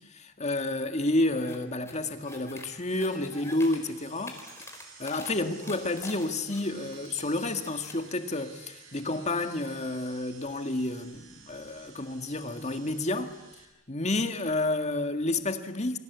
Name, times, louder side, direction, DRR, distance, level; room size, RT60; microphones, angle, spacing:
voice 1, 0.0-4.4 5.0-13.3 13.9-16.0, left 2 dB, 35° left, 2.0 m, -30 dB
sound 1, 1.4-1.6 1.8-2.7 3.0-3.8 4.1-5.3 5.6-7.2 7.5-8.0, left 3 dB, 15° left, 4.2 m, -45 dB
sound 2, 2.1-13.7, right 5 dB, 70° right, 5.9 m, -52 dB
29.0 x 24.0 x 8.3 m
head